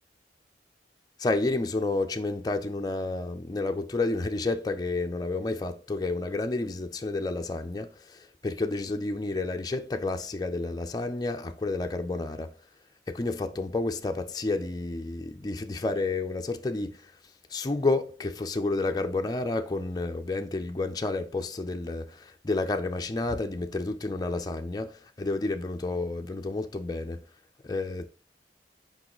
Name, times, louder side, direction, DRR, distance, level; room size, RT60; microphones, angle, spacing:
voice 1, 1.2-12.5 13.1-17.1 17.5-27.2 27.6-28.1, left 2 dB, 20° left, 0.4 m, -30 dB
6.1 x 5.3 x 3.0 m
head